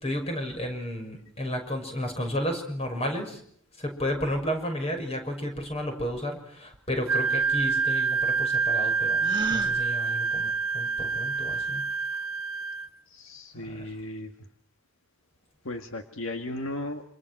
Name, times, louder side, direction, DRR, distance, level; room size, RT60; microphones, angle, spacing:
voice 1, 0.0-3.4 3.8-11.9 13.7-13.9, equal, 30° left, 5 dB, 6.3 m, -32 dB
Wind instrument woodwind instrument, 7.1-12.9, right 5 dB, 70° right, 1.1 m, -27 dB
Gasp, 9.2-9.8, right 3 dB, 20° right, 1.7 m, -32 dB
voice 2, 13.1-14.3 15.6-17.0, left 1 dB, 70° left, 5 dB, 2.0 m, -35 dB
28.0 x 27.0 x 6.2 m, 0.62 s
head